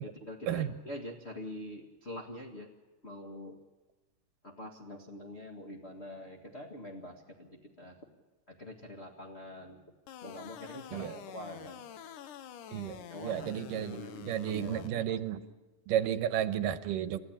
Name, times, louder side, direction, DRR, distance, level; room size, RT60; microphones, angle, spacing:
voice 1, 0.0-2.7 3.0-3.6 4.4-8.0 8.5-9.8 10.2-11.8 13.1-15.1, left 1 dB, 30° left, 1 dB, 1.3 m, -45 dB
sound 1, 10.1-14.9, left 10 dB, 75° left, 2.4 m, -47 dB
voice 2, 12.7-15.4 15.9-17.2, right 10 dB, 85° right, 11 dB, 2.5 m, -33 dB
29.5 x 14.0 x 8.8 m, 1.2 s
omnidirectional pair, 3.8 m